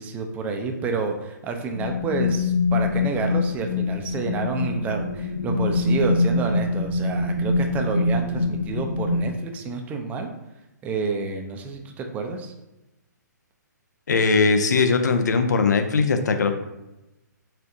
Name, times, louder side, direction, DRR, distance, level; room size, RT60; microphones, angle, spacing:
voice 1, 0.0-10.3 10.8-12.5, right 4 dB, 15° right, 4 dB, 0.4 m, -29 dB
sound 1, 1.7-9.3, left 3 dB, 25° left, 0.6 m, -24 dB
voice 2, 14.1-16.5, left 4 dB, 65° left, 7 dB, 0.5 m, -20 dB
4.3 x 3.8 x 2.5 m, 0.98 s
figure-of-eight pair, 130°, 10 cm